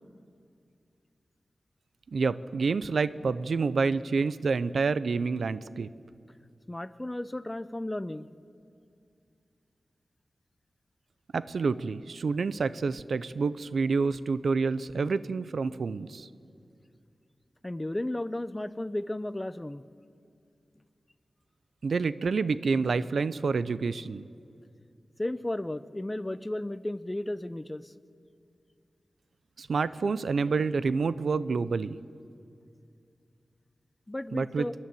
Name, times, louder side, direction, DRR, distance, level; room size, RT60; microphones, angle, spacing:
voice 1, 2.1-5.9 11.3-16.3 21.8-24.3 29.6-32.0 34.3-34.7, right 4 dB, 80° right, 16 dB, 0.6 m, -28 dB
voice 2, 6.7-8.3 17.6-19.8 25.2-27.9 34.1-34.7, left 1 dB, 15° left, 15 dB, 0.6 m, -34 dB
27.0 x 11.0 x 9.1 m, 2.5 s
wide cardioid pair, 90°, 0 cm